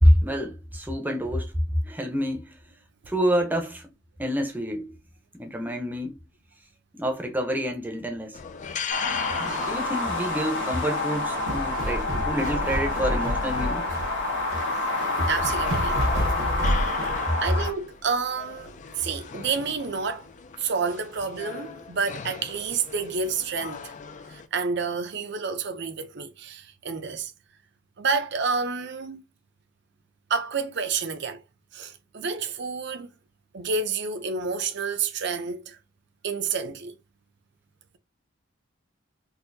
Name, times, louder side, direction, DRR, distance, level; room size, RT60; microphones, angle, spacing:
voice 1, 0.0-1.5 1.8-2.6 3.1-3.9 4.2-5.0 5.4-6.2 6.9-8.4 9.4-13.9, equal, 10° right, 0.7 m, -26 dB
sound 1, 8.3-24.5, left 6 dB, 40° left, 0.4 m, -39 dB
sound 2, 8.9-17.7, left 2 dB, 75° left, 1.3 m, -28 dB
sound 3, 11.1-17.2, equal, 80° right, 1.2 m, -29 dB
voice 2, 15.3-16.0 17.4-20.3 20.6-23.9 24.3-27.3 28.0-29.2 30.3-31.4 31.7-33.1 33.5-35.8 36.2-37.0, right 5 dB, 60° right, 0.6 m, -29 dB
3.9 x 2.6 x 2.6 m
head